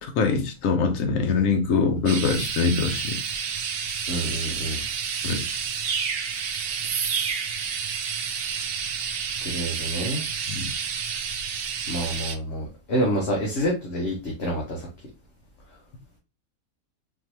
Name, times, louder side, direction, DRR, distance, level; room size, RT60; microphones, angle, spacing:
voice 1, 0.0-3.2 5.2-5.4 10.5-10.7, left 5 dB, 65° left, 1.2 m, -23 dB
sound 1, 2.1-12.4, right 7 dB, 65° right, 0.6 m, -30 dB
voice 2, 4.1-4.8 9.4-10.2 11.9-14.9, equal, 50° left, 1.3 m, -27 dB
4.3 x 3.1 x 2.9 m
omnidirectional pair, 1.6 m